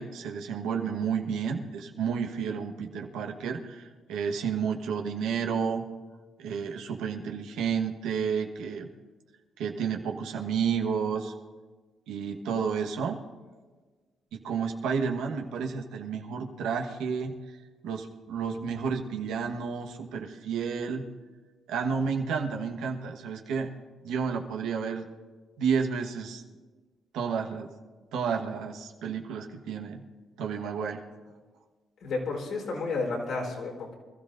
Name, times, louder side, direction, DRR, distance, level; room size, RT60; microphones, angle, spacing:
voice 1, 0.0-5.8 6.4-8.9 9.6-11.3 12.1-13.2 14.3-17.4 17.8-21.1 21.7-23.7 24.0-25.1 25.6-26.4 27.1-27.7 28.1-30.0 30.4-31.0, right 6 dB, 90° right, 3 dB, 1.3 m, -31 dB
voice 2, 32.0-33.9, left 3 dB, 75° left, -1 dB, 3.9 m, -31 dB
25.5 x 13.5 x 2.6 m, 1.4 s
cardioid pair, 90°, 0 cm